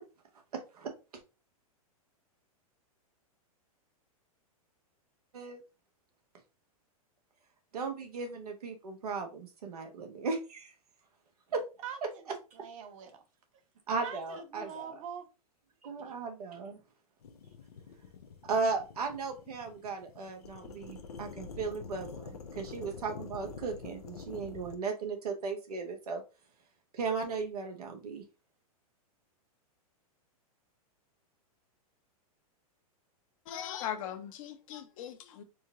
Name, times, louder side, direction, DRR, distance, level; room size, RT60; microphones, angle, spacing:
voice 1, 0.5-0.9 5.3-5.6 7.7-10.7 11.5-11.6 13.9-14.9 15.8-16.8 18.5-26.2 26.9-28.2, right 4 dB, 90° right, 1.1 m, -36 dB
voice 2, 11.8-12.2 12.5-13.2 14.0-15.3 15.8-16.1, right 7 dB, 60° right, 1.0 m, -44 dB
sound 1, 17.2-24.8, left 5 dB, 90° left, 0.7 m, -47 dB
voice 3, 33.5-35.4, left 10 dB, 60° left, 0.9 m, -39 dB
4.5 x 2.2 x 3.6 m
hypercardioid pair, 125°, 19 cm